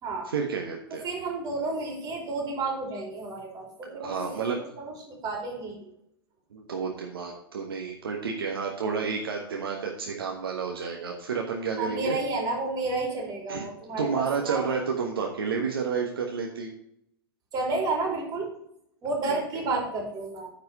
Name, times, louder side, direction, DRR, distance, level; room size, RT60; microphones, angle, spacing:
voice 1, 0.3-1.0 3.9-4.6 6.5-12.2 13.5-13.6 14.0-16.7 19.3-19.4, right 5 dB, 65° right, 1 dB, 1.2 m, -30 dB
voice 2, 1.0-4.4 4.8-5.9 11.8-14.9 17.5-18.5 19.0-20.5, right 3 dB, 30° right, 0 dB, 3.5 m, -31 dB
9.6 x 4.7 x 5.6 m, 0.74 s
figure-of-eight pair, 95°, 13 cm